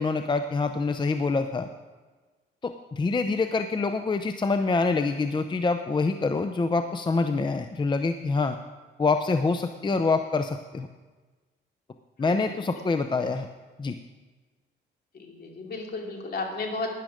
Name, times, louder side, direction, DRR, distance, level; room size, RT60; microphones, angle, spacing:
voice 1, 0.0-1.7 2.6-8.6 9.0-10.9 12.2-13.5 13.8-14.0, left 3 dB, 25° left, 8 dB, 0.6 m, -26 dB
voice 2, 15.1-17.0, left 3 dB, 50° left, 1 dB, 2.7 m, -34 dB
12.5 x 10.0 x 5.1 m, 1.3 s
cardioid pair, 90°, 20 cm